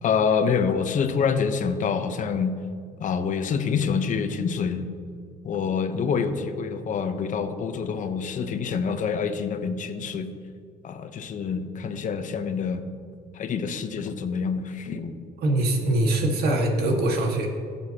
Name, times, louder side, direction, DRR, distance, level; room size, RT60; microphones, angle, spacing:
voice 1, 0.0-2.6 3.0-4.9 5.4-10.3 10.8-12.8 13.3-15.1, left 6 dB, 50° left, 8 dB, 0.9 m, -26 dB
voice 2, 15.4-17.5, right 1 dB, 70° right, 1 dB, 1.8 m, -23 dB
19.5 x 7.1 x 2.9 m, 2.2 s
cardioid pair, 110°, 17 cm